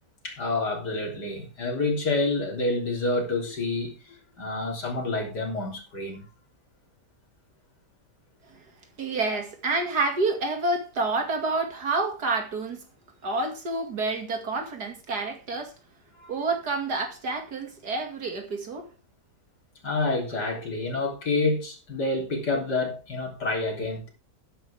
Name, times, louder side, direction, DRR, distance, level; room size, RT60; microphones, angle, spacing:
voice 1, 0.2-6.2 16.2-16.3 19.8-24.1, left 2 dB, 80° left, 3.9 m, -28 dB
voice 2, 9.0-12.8 13.2-15.7 16.3-18.9, right 3 dB, 70° right, 2.8 m, -28 dB
11.5 x 10.5 x 3.5 m
omnidirectional pair, 1.8 m